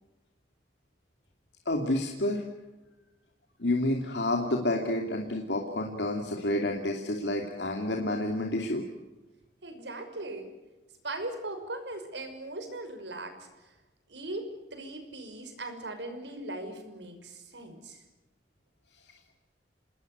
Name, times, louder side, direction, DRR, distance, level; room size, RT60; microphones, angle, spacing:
voice 1, 1.7-2.4 3.6-8.8, left 1 dB, 80° left, 2 dB, 2.8 m, -29 dB
voice 2, 9.6-10.5 11.0-13.5 14.1-18.0, right 2 dB, 85° right, 7 dB, 5.9 m, -39 dB
28.0 x 20.5 x 8.1 m, 1.1 s
head